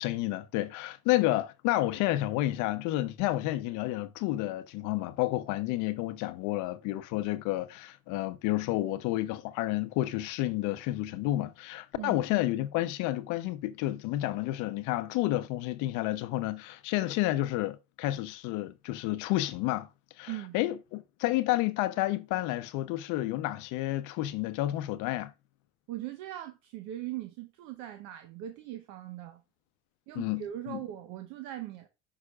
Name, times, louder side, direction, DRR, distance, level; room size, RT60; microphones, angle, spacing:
voice 1, 0.0-19.9 20.2-25.3 30.1-30.8, left 16 dB, 60° left, 0.7 m, -30 dB
voice 2, 25.9-29.4 30.1-31.9, right 13 dB, 65° right, 0.9 m, -40 dB
9.7 x 5.7 x 2.4 m
supercardioid pair, 125°, 33 cm